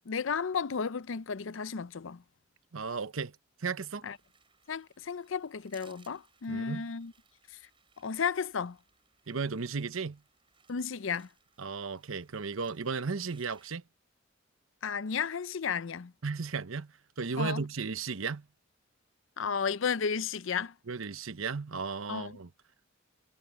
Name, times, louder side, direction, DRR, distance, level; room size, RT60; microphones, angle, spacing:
voice 1, 0.1-2.2 4.0-4.2 4.7-7.1 8.0-8.8 10.7-11.3 14.8-16.1 17.4-17.6 19.4-20.7 22.1-22.4, left 6 dB, 70° left, 0.5 m, -33 dB
voice 2, 2.7-3.3 3.6-4.0 6.5-6.9 9.3-10.2 11.6-13.8 16.2-18.4 20.9-22.5, right 4 dB, 85° right, 0.9 m, -35 dB
sound 1, 4.1-13.7, right 6 dB, 25° right, 7.2 m, -65 dB
head